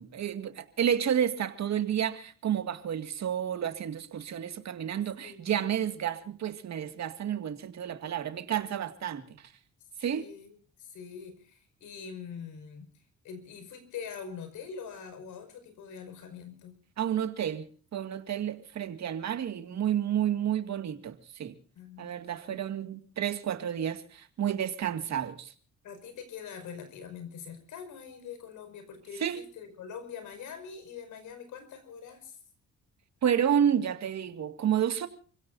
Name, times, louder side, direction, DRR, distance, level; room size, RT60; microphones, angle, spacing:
voice 1, 0.0-9.4 10.0-10.3 17.0-21.5 22.0-25.5 29.2-29.4 33.2-35.1, right 9 dB, 60° right, 2.1 m, -30 dB
voice 2, 5.2-5.6 10.1-16.8 21.7-22.1 22.5-22.6 25.8-32.4, left 6 dB, 80° left, 5.6 m, -44 dB
29.5 x 16.5 x 2.7 m
cardioid pair, 90°, 30 cm